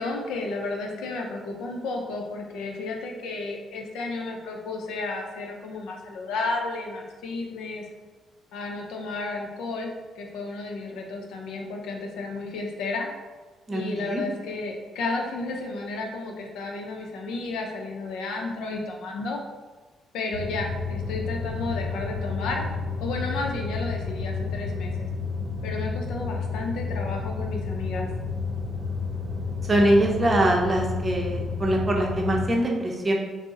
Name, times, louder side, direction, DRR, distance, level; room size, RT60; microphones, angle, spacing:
voice 1, 0.0-7.8 8.5-13.1 13.7-19.4 20.1-22.7 23.0-24.9 25.6-28.1, left 3 dB, 90° left, 1 dB, 0.5 m, -32 dB
voice 2, 13.7-14.2 29.6-33.1, right 1 dB, 25° right, 0 dB, 0.6 m, -23 dB
sound 1, 20.3-32.5, left 4 dB, 85° right, 0.5 m, -31 dB
3.6 x 2.0 x 3.7 m, 1.3 s
cardioid pair, 90°, 0 cm